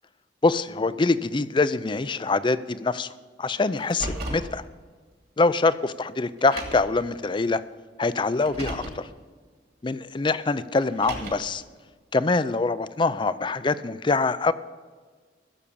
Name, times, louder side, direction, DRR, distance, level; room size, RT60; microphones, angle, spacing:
voice 1, 0.4-3.1 3.4-4.6 5.4-7.6 8.0-9.1 9.8-11.6 12.1-14.5, left 3 dB, 25° left, 15 dB, 0.4 m, -24 dB
Car, 3.8-4.5 5.6-5.7 6.4-7.0 8.3-9.0 10.8-11.6, right 1 dB, 55° right, 2.4 m, -35 dB
15.5 x 7.2 x 7.0 m, 1.5 s
head